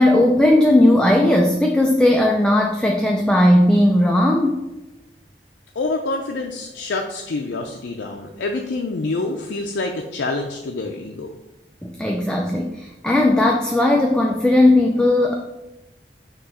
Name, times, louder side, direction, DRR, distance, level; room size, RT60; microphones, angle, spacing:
voice 1, 0.0-4.7 11.8-15.4, left 1 dB, 5° left, 0 dB, 0.4 m, -16 dB
voice 2, 5.8-11.3, left 3 dB, 80° left, 3 dB, 0.5 m, -27 dB
6.0 x 2.9 x 5.5 m, 1.0 s
head